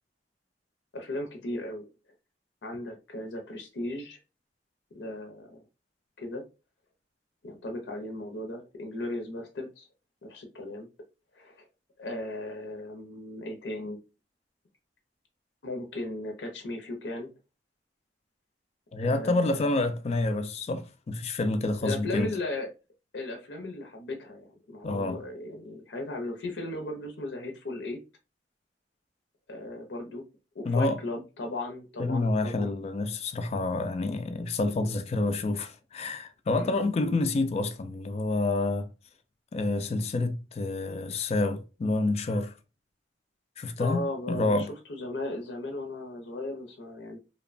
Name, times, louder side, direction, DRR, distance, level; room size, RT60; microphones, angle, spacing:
voice 1, 0.9-1.9 2.6-4.2 4.9-5.6 6.2-6.4 7.4-9.9 10.2-10.9 11.3-11.6 12.0-14.0 15.6-17.3 19.0-19.7 21.8-22.7 23.1-28.0 29.5-30.2 30.5-32.8 36.6-36.8 43.8-47.2, left 2 dB, 75° left, 0.6 m, -36 dB
voice 2, 18.9-22.3 24.8-25.2 30.7-31.0 32.0-38.9 39.5-42.5 43.6-44.7, left 2 dB, 35° left, 0.3 m, -28 dB
2.8 x 2.1 x 2.4 m
head